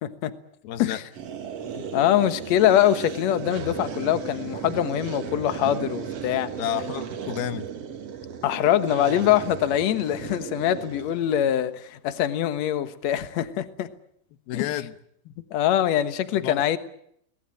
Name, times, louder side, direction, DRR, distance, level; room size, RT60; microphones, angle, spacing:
voice 1, 0.0-0.3 0.8-1.0 1.8-6.5 8.4-13.9 14.5-14.6 15.5-16.8, left 11 dB, 60° left, 10 dB, 2.1 m, -23 dB
voice 2, 0.6-1.0 6.6-7.7 14.5-14.9 15.3-15.4 16.4-16.6, left 11 dB, 80° left, 10 dB, 3.1 m, -31 dB
sound 1, 1.1-11.6, right 7 dB, 50° right, 2.2 m, -36 dB
22.5 x 19.5 x 9.0 m, 0.70 s
omnidirectional pair, 4.3 m